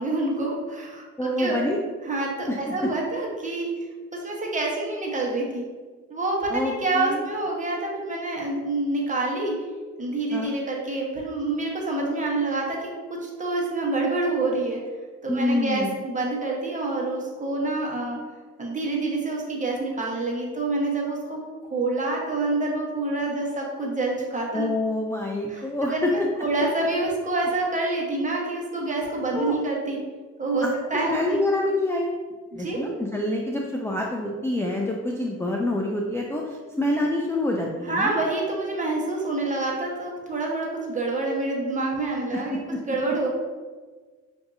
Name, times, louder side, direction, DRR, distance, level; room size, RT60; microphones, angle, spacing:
voice 1, 0.0-1.6 2.1-3.9 4.2-5.6 6.1-9.6 10.0-14.8 15.2-18.2 18.6-21.4 21.7-24.7 25.5-30.0 30.4-31.4 32.5-32.8 37.8-42.6 42.8-43.3, right 2 dB, 25° right, -2 dB, 1.0 m, -27 dB
voice 2, 1.2-1.8 2.5-2.9 6.5-7.3 10.3-10.5 15.3-16.0 24.5-26.3 29.3-29.5 30.6-30.8 31.1-32.1 32.5-38.2 42.3-42.8, left 1 dB, 10° left, -1 dB, 0.4 m, -26 dB
5.9 x 2.6 x 2.6 m, 1.4 s
cardioid pair, 90°, 30 cm